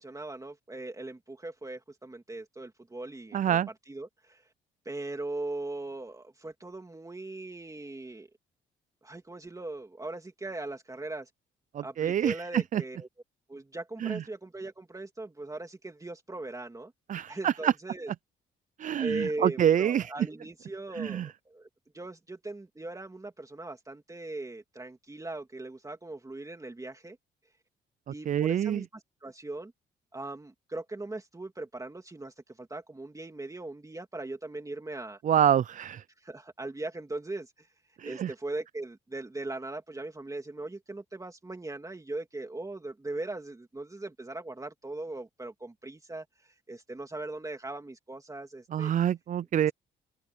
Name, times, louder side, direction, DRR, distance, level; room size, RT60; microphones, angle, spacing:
voice 1, 0.0-3.6 3.9-4.4 4.8-8.3 9.0-11.3 11.8-13.1 13.5-16.9 17.3-18.1 19.0-21.7 21.9-27.2 28.1-29.7 30.1-35.2 36.2-37.7 38.0-48.9, right 2 dB, 15° right, 2.8 m, -39 dB
voice 2, 3.3-3.7 11.7-12.8 14.0-14.2 17.1-17.7 18.8-20.1 21.0-21.3 28.3-28.8 35.2-36.0 38.0-38.3 48.7-49.7, right 10 dB, 40° right, 0.4 m, -26 dB
open air
cardioid pair, 90°, 20 cm